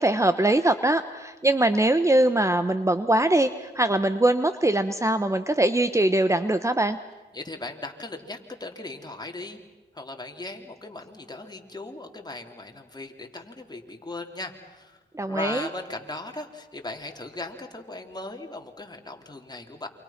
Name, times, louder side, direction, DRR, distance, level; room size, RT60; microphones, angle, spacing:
voice 1, 0.0-7.0 15.1-15.7, right 1 dB, 15° right, 11 dB, 1.0 m, -22 dB
voice 2, 7.3-9.6 9.9-15.0 15.3-19.9, left 2 dB, 20° left, 3 dB, 3.6 m, -38 dB
28.5 x 26.5 x 6.0 m, 1.2 s
cardioid pair, 55°, 18 cm